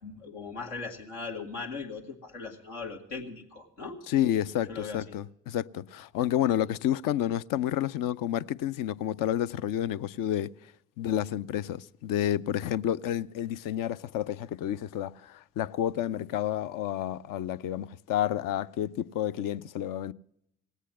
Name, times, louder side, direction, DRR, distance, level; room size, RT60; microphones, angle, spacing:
voice 1, 0.0-4.0 4.7-5.2, left 4 dB, 90° left, 1.8 m, -39 dB
voice 2, 4.1-10.5 11.0-20.1, left 11 dB, 65° left, 0.5 m, -30 dB
18.0 x 8.2 x 7.4 m
hypercardioid pair, 45°, 36 cm